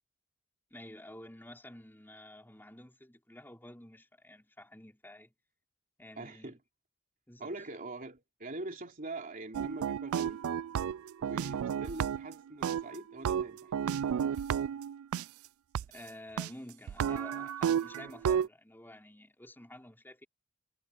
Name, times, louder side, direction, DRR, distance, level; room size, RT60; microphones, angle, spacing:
voice 1, 0.7-5.3 6.0-6.6 7.3-7.6 15.9-20.3, left 1 dB, 10° left, 5.4 m, -50 dB
voice 2, 6.2-6.6 7.4-10.4 11.2-13.7, right 2 dB, 40° right, 3.3 m, -43 dB
sound 1, 9.5-12.3 12.6-15.2 15.7-15.8 16.4-16.5 16.9-18.5, right 8 dB, 70° right, 0.3 m, -32 dB
head